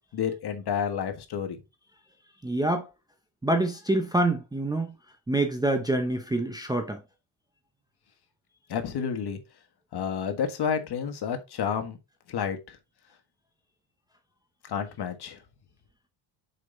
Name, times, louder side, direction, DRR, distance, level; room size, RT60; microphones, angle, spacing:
voice 1, 0.1-1.6 8.7-9.4 9.9-12.0 12.3-12.8 14.6-15.4, left 7 dB, 50° left, 1.6 m, -30 dB
voice 2, 2.4-2.9 3.4-4.9 5.3-7.0, right 2 dB, 10° right, 0.7 m, -26 dB
6.6 x 5.2 x 3.8 m
cardioid pair, 135°, 49 cm